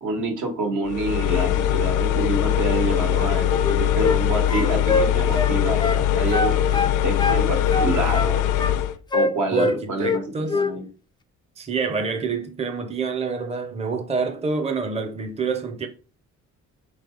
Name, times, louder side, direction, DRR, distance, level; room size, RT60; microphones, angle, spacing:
voice 1, 0.0-8.4 9.1-10.2 10.5-10.8, right 2 dB, 75° right, 1.6 m, -27 dB
sound 1, 0.9-9.0, left 11 dB, 85° left, 0.5 m, -21 dB
sound 2, 3.5-4.2 4.5-6.0 6.3-7.4 7.7-8.7 9.1-10.2 10.5-10.7, left 3 dB, 15° left, 0.3 m, -24 dB
voice 2, 9.5-10.6 11.6-15.9, right 4 dB, 20° right, 0.6 m, -27 dB
4.1 x 3.2 x 3.8 m
cardioid pair, 90°, 30 cm